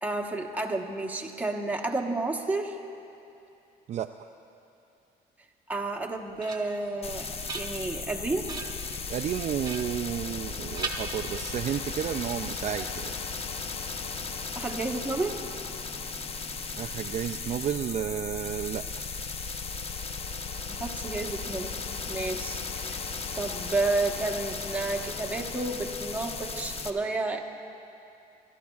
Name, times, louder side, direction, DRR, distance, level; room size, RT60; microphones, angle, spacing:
voice 1, 0.0-2.8 5.7-7.3 7.5-8.5 14.5-15.4 20.7-21.7 22.1-23.0 23.3-27.5, right 2 dB, 10° right, 1 dB, 1.1 m, -31 dB
voice 2, 3.9-4.3 9.1-13.1 16.7-19.0, right 10 dB, 45° right, 6 dB, 0.4 m, -32 dB
sound 1, 5.9-6.9 7.3-8.1 8.5-8.9 9.6-10.5 10.8-11.7, right 3 dB, 25° right, 1.4 m, -39 dB
sound 2, 7.0-26.9, left 4 dB, 35° left, 0.7 m, -36 dB
27.5 x 13.0 x 2.4 m, 2.7 s
cardioid pair, 110°, 17 cm